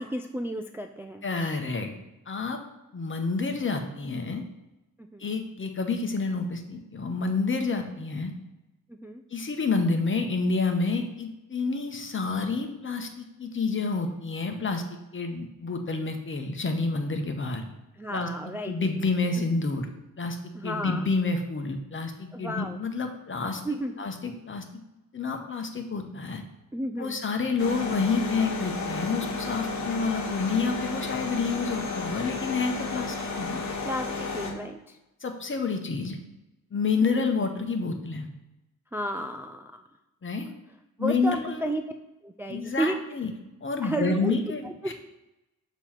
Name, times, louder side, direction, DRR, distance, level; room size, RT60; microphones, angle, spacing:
voice 1, 0.0-1.2 5.0-5.3 8.9-9.2 18.0-18.7 20.5-21.1 22.3-22.8 23.6-23.9 26.7-27.2 33.8-35.0 37.0-37.3 38.9-39.8 41.0-41.8 42.2-43.0 43.8-44.4 44.6-44.9, right 1 dB, 5° right, 4 dB, 0.3 m, -32 dB
voice 2, 1.2-1.9 2.3-2.6 2.9-4.4 5.2-8.3 9.3-17.7 18.1-18.3 18.7-19.9 20.2-24.6 25.1-26.4 27.0-33.7 35.2-36.2 36.7-38.3 40.2-40.5 41.0-41.7 42.5-43.3 43.6-44.9, left 4 dB, 40° left, 5 dB, 0.9 m, -29 dB
sound 1, 27.6-34.5, left 3 dB, 55° left, 1.2 m, -32 dB
6.8 x 3.0 x 5.7 m, 0.97 s
wide cardioid pair, 105°, 33 cm